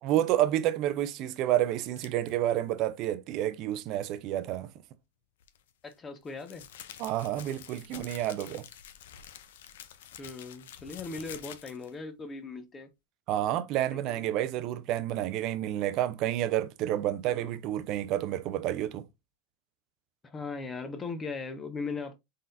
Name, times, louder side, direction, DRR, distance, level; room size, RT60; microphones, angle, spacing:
voice 1, 0.0-4.7 7.0-8.7 13.3-19.0, right 12 dB, 50° right, 0.5 m, -29 dB
sound 1, 2.0-2.3 5.4-12.0, left 10 dB, 80° left, 0.5 m, -48 dB
voice 2, 5.8-6.6 10.2-12.9 13.9-14.2 17.3-17.5 20.2-22.2, left 4 dB, 20° left, 0.8 m, -39 dB
4.0 x 3.8 x 2.6 m
hypercardioid pair, 110°, 0 cm